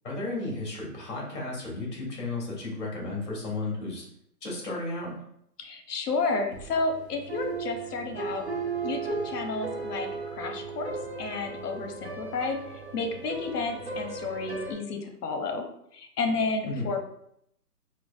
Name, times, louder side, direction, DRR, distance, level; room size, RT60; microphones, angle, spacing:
voice 1, 0.0-4.0 4.4-5.2 16.6-16.9, left 2 dB, 45° left, -3 dB, 1.5 m, -33 dB
voice 2, 5.6-8.4 8.8-10.9 11.2-15.6 15.9-17.0, left 3 dB, 75° left, 4 dB, 0.8 m, -31 dB
sound 1, 6.5-14.7, right 4 dB, 45° right, 0.4 m, -36 dB
4.5 x 2.1 x 2.4 m, 0.73 s
hypercardioid pair, 175°, 47 cm